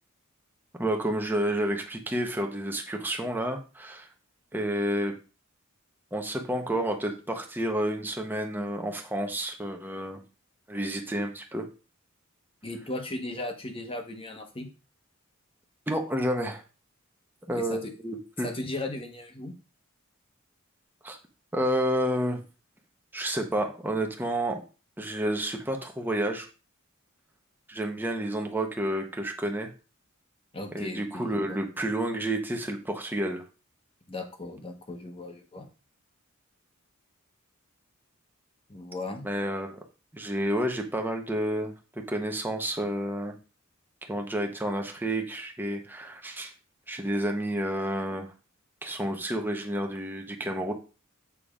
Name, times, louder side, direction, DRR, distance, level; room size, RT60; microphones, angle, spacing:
voice 1, 0.8-4.1 4.5-5.1 6.1-10.2 10.7-11.7 15.9-16.6 17.5-18.5 21.0-21.2 21.5-22.4 23.1-24.6 25.0-26.5 27.7-29.7 30.7-33.4 39.2-39.8 40.1-43.3 44.1-46.5 46.9-48.3 48.8-50.7, right 1 dB, 10° right, 3 dB, 1.0 m, -30 dB
voice 2, 12.6-14.7 17.5-17.9 18.4-19.5 30.5-31.6 34.1-35.7 38.7-39.3, left 2 dB, 25° left, 5 dB, 1.1 m, -37 dB
7.1 x 3.9 x 5.0 m, 0.33 s
head